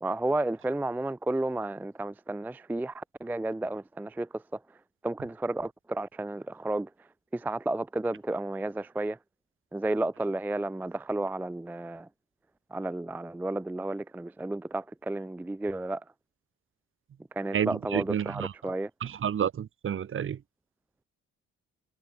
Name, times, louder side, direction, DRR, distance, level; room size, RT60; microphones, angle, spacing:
voice 1, 0.0-4.8 5.0-9.2 9.7-12.1 12.7-16.0 17.3-18.9, right 2 dB, 5° right, 0.4 m, -32 dB
voice 2, 17.5-18.5 19.0-20.4, right 8 dB, 45° right, 0.9 m, -30 dB
cardioid pair, 90°, 30 cm